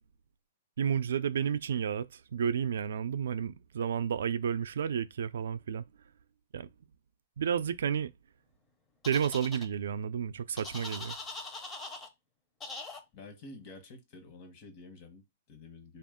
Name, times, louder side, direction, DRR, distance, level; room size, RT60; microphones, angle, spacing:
voice 1, 0.8-5.8 6.5-6.7 7.4-8.1 9.1-11.2, right 8 dB, 80° right, 0.3 m, -31 dB
sound 1, 9.0-9.7 10.6-12.1 12.6-13.0, left 3 dB, 15° left, 0.6 m, -42 dB
voice 2, 13.1-16.0, left 3 dB, 40° left, 1.0 m, -50 dB
3.5 x 2.3 x 3.5 m
hypercardioid pair, 155°, 0 cm